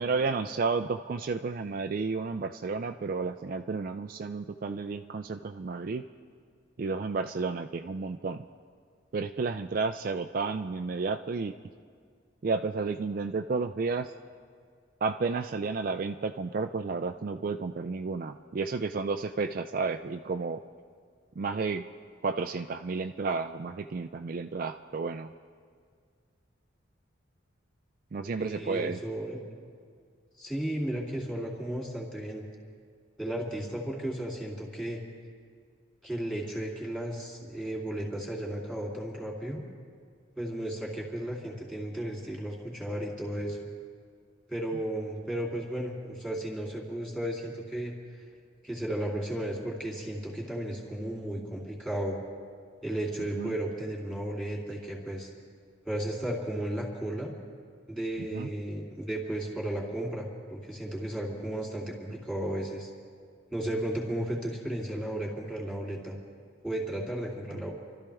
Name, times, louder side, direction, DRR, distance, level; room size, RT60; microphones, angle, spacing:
voice 1, 0.0-6.0 6.8-8.4 9.1-11.5 12.4-14.1 15.0-20.6 21.4-21.9 22.2-25.3 28.1-29.0 53.4-53.6 58.2-58.5, right 4 dB, 45° right, 8 dB, 0.4 m, -32 dB
voice 2, 28.4-29.4 30.4-32.4 33.2-35.0 36.0-39.6 40.4-43.6 44.5-47.9 48.6-52.2 52.8-55.3 55.8-57.3 57.9-62.9 63.5-66.2 66.6-67.7, right 1 dB, 5° left, -2 dB, 2.9 m, -34 dB
29.0 x 13.0 x 3.5 m, 2.1 s
head